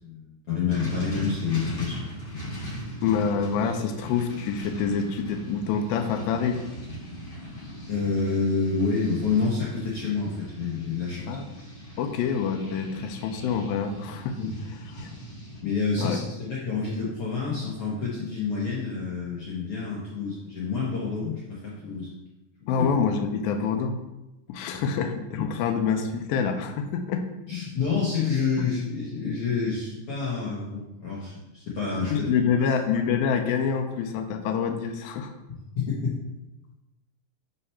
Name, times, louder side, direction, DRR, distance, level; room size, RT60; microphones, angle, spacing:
voice 1, 0.0-2.4 7.9-11.4 14.3-14.5 15.6-22.1 22.8-22.9 24.7-24.8 25.4-25.5 27.5-32.1 32.6-32.7 35.7-36.1, left 5 dB, 70° left, -6 dB, 1.4 m, -28 dB
sound 1, 0.7-15.6, equal, 45° left, 1.7 m, -39 dB
voice 2, 3.0-6.6 11.3-11.5 12.0-14.4 15.0-15.1 16.0-16.2 22.7-24.0 24.5-27.3 28.6-28.7 32.1-35.3, left 6 dB, 85° left, 5 dB, 2.4 m, -26 dB
4.7 x 4.3 x 5.5 m, 0.99 s
omnidirectional pair, 4.1 m